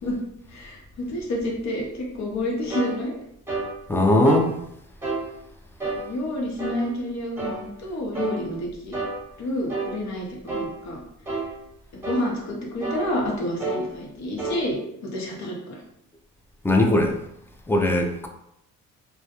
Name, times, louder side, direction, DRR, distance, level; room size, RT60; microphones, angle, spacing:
voice 1, 0.5-3.2 5.9-8.9 9.4-11.0 11.9-14.8 15.1-15.8, left 1 dB, 65° left, -1 dB, 0.8 m, -29 dB
sound 1, 2.7-2.9 3.5-3.7 4.2-4.5 5.0-5.3 5.8-6.0 6.6-6.8 7.4-7.6 8.1-8.4 8.9-9.2 9.7-9.9 10.5-10.7 11.3-11.5 12.0-12.3 12.8-13.1 13.6-13.8 14.4-14.6, right 3 dB, 10° right, 0.9 m, -29 dB
voice 2, 3.9-4.5 16.6-17.1 17.7-18.3, left 1 dB, 10° left, 2 dB, 0.3 m, -19 dB
2.2 x 2.1 x 2.8 m, 0.77 s
cardioid pair, 90°, 30 cm